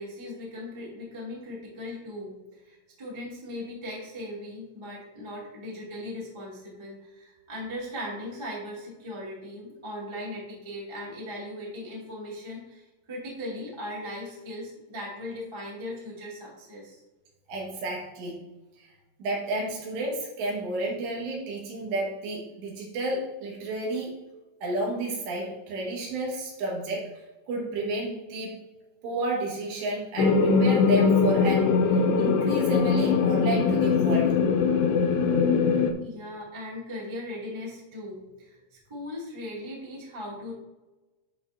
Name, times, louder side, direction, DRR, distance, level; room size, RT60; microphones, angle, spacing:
voice 1, 0.0-17.0 36.0-40.5, left 1 dB, 15° right, -7 dB, 1.1 m, -38 dB
voice 2, 17.5-18.4 18.8-18.9 19.2-24.1 24.6-27.1 27.5-28.6 29.0-34.4, right 2 dB, 75° right, -2 dB, 3.8 m, -31 dB
sound 1, 30.2-35.9, left 5 dB, 80° left, 2.7 m, -22 dB
13.0 x 4.4 x 2.7 m, 1.1 s
omnidirectional pair, 5.2 m